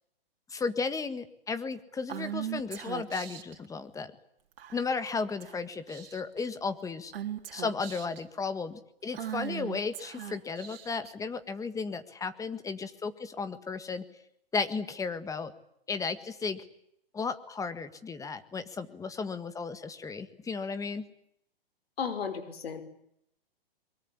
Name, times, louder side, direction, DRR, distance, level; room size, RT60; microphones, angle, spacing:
voice 1, 0.5-4.1 4.7-7.1 7.5-14.0 14.5-15.5 15.9-16.6 17.1-21.1, left 4 dB, 10° left, 11 dB, 1.7 m, -34 dB
Female speech woman speaking / Whispering, 2.1-3.6 4.6-5.0 5.4-5.6 5.9-6.4 7.1-8.2 9.1-11.1, right 10 dB, 65° right, 3.7 m, -39 dB
voice 2, 22.0-22.8, left 6 dB, 75° left, 8 dB, 5.3 m, -34 dB
23.0 x 22.5 x 9.9 m, 0.75 s
hypercardioid pair, 135°, 30 cm